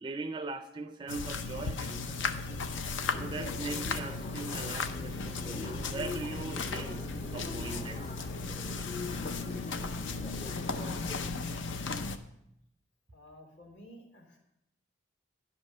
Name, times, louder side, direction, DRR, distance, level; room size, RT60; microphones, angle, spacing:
voice 1, 0.0-2.6 3.2-8.1, right 3 dB, 25° right, 9 dB, 0.3 m, -40 dB
sound 1, 1.1-12.2, left 4 dB, 85° left, 0.6 m, -36 dB
sound 2, 3.1-11.3, left 2 dB, 35° left, 0.6 m, -44 dB
voice 2, 13.1-14.4, equal, 70° left, -2 dB, 2.8 m, -53 dB
10.5 x 5.3 x 6.4 m, 0.80 s
head